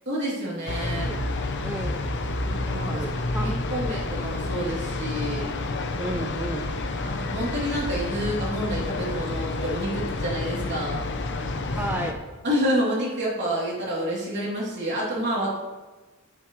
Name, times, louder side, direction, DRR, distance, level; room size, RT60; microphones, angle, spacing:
voice 1, 0.1-1.1 2.4-3.0 3.4-5.4 7.0-11.0 12.4-15.5, equal, 55° right, -5 dB, 3.2 m, -28 dB
sound 1, 0.7-12.1, left 2 dB, 60° left, 0.9 m, -29 dB
voice 2, 1.6-2.0 2.7-3.9 6.0-6.7 10.6-10.8 11.8-12.2, right 1 dB, 10° right, 3 dB, 0.4 m, -33 dB
12.0 x 8.5 x 3.3 m, 1.3 s
head